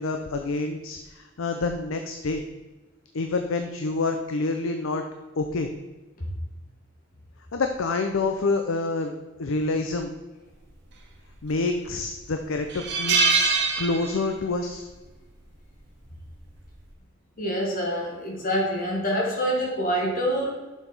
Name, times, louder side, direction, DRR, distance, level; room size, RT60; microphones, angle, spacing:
voice 1, 0.0-2.4 3.1-5.0 5.4-5.7 7.5-9.1 9.4-10.1 11.4-13.2 13.8-14.9, left 3 dB, 80° left, 5 dB, 0.6 m, -27 dB
sound 1, 11.3-11.8 12.2-12.3 12.7-14.5 14.8-15.0 16.3-16.6, right 4 dB, 55° right, 0.9 m, -24 dB
voice 2, 17.4-20.5, equal, 45° left, -1 dB, 1.3 m, -26 dB
7.2 x 5.8 x 4.0 m, 1.2 s
head